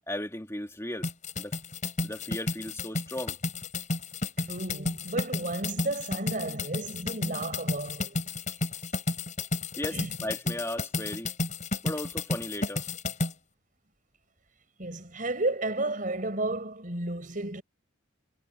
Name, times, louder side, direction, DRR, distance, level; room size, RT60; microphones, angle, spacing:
voice 1, 0.1-1.1 1.4-1.6 2.0-3.4 9.8-11.3 11.8-12.8, left 1 dB, 15° left, 2.4 m, -36 dB
sound 1, 1.0-13.3, left 2 dB, 40° left, 7.0 m, -32 dB
voice 2, 4.4-8.2 9.9-10.1 14.8-17.6, right 2 dB, 40° right, 5.3 m, -32 dB
head